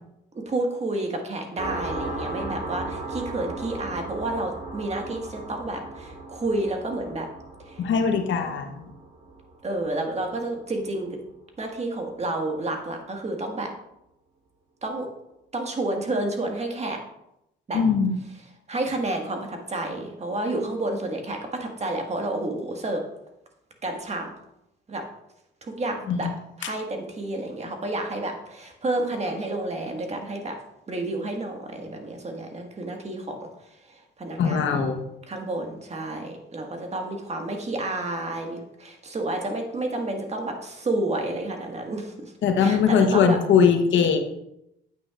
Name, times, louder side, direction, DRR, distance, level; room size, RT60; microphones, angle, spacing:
voice 1, 0.3-7.3 7.6-7.8 9.6-11.2 11.6-13.7 14.8-15.1 15.5-17.0 17.7-17.8 18.7-23.0 23.8-24.3 24.9-25.0 25.6-26.3 26.6-30.6 30.9-33.5 33.9-34.8 35.3-42.3 42.6-43.4, right 2 dB, 35° right, 2 dB, 1.7 m, -30 dB
sound 1, 1.6-10.8, right 2 dB, 55° right, 3.0 m, -36 dB
voice 2, 7.8-8.8 17.7-18.2 26.1-26.3 34.4-35.0 42.4-44.2, left 6 dB, 75° left, 6 dB, 1.0 m, -21 dB
8.9 x 8.6 x 2.5 m, 0.83 s
cardioid pair, 90°, 20 cm